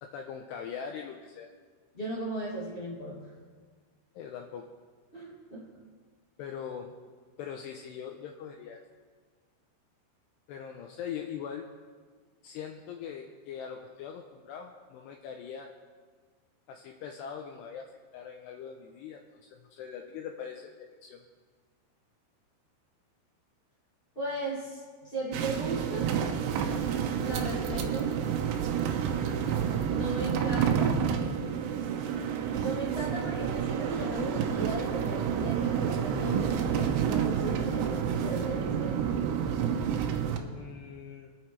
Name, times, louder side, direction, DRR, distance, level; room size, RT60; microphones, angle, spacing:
voice 1, 0.0-1.5 4.2-4.7 6.4-6.9 7.4-8.8 10.5-11.7 12.4-15.7 16.7-17.9 18.1-19.2 19.5-20.8 21.0-21.2 40.5-41.3, left 7 dB, 80° left, 3 dB, 2.5 m, -41 dB
voice 2, 1.9-3.2 5.1-5.7 24.1-26.1 27.2-28.1 29.6-31.0 32.6-39.1, right 1 dB, 20° left, -8 dB, 1.5 m, -36 dB
sound 1, 25.3-40.4, right 8 dB, 80° right, 3.4 m, -29 dB
24.5 x 8.6 x 4.7 m, 1.5 s
omnidirectional pair, 5.6 m